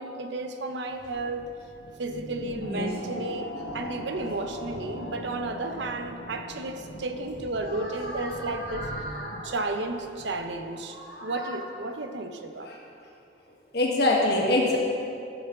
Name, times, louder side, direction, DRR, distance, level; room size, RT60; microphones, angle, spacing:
voice 1, 0.0-1.5 2.0-8.9 9.3-12.7, right 2 dB, 65° right, 6 dB, 0.7 m, -33 dB
sound 1, 0.9-10.5, equal, 90° left, 1.2 m, -41 dB
voice 2, 2.5-3.0 7.6-9.5 10.9-11.6 12.6-12.8 13.7-14.8, left 2 dB, 55° left, -3 dB, 1.6 m, -28 dB
12.5 x 6.9 x 3.8 m, 2.6 s
head